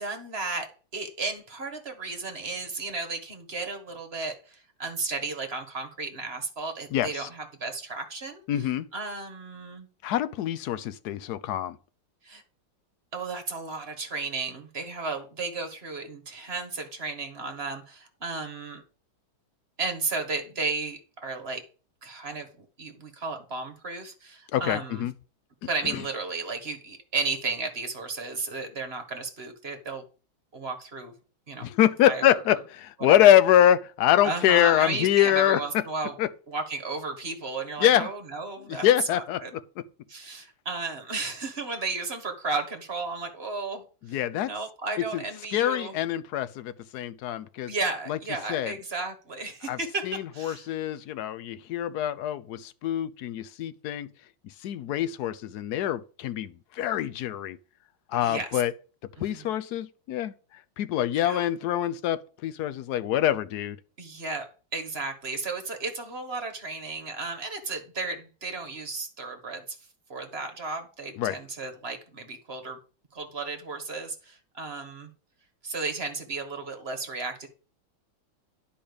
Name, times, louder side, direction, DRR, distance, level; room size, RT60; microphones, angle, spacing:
voice 1, 0.0-8.4 8.9-9.9 12.2-12.4 13.1-18.8 19.8-21.6 22.0-22.5 22.8-25.1 25.7-30.0 30.5-31.1 31.5-31.7 32.0-32.4 33.0-33.3 34.2-36.1 36.5-38.9 39.1-39.5 40.1-44.2 44.4-46.0 47.7-50.1 50.3-50.7 58.2-58.6 59.2-59.5 61.1-61.5 64.0-64.5 64.7-69.8 70.1-72.8 73.1-75.1 75.6-77.5, right 3 dB, 30° right, 1.6 m, -34 dB
voice 2, 6.9-7.3 8.5-8.9 10.0-11.8 24.5-25.1 25.9-26.0 31.6-35.6 36.2-36.3 37.8-38.1 38.7-39.6 44.1-44.5 45.1-45.2 45.5-47.7 48.1-48.2 48.5-48.7 49.7-49.8 50.0-54.1 54.6-57.6 58.1-58.7 59.2-60.3 60.8-63.8 71.2-71.4, left 12 dB, 65° left, 1.0 m, -24 dB
10.0 x 5.2 x 6.8 m
omnidirectional pair, 2.3 m